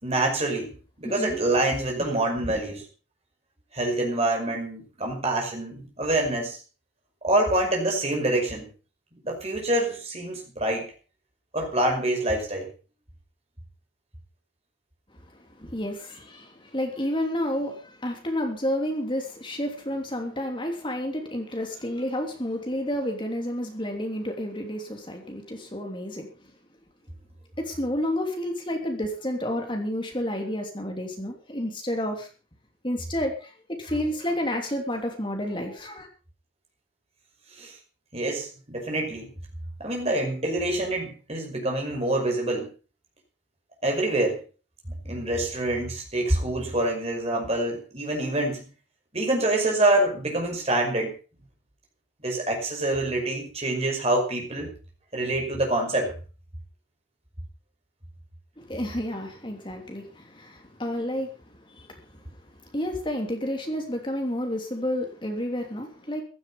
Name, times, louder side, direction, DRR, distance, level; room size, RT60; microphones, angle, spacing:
voice 1, 0.0-2.8 3.7-6.6 7.2-8.7 9.2-10.9 11.5-12.7 37.6-37.7 38.1-39.3 39.8-42.7 43.8-44.4 45.0-48.6 49.1-51.1 52.2-54.7 55.1-56.1, right 1 dB, 30° right, 1 dB, 5.5 m, -26 dB
voice 2, 1.0-1.4 15.5-26.3 27.6-32.3 32.8-36.1 58.6-61.3 61.7-62.2 62.6-66.2, left 1 dB, 25° left, 3 dB, 3.1 m, -30 dB
15.5 x 12.5 x 5.5 m, 0.36 s
head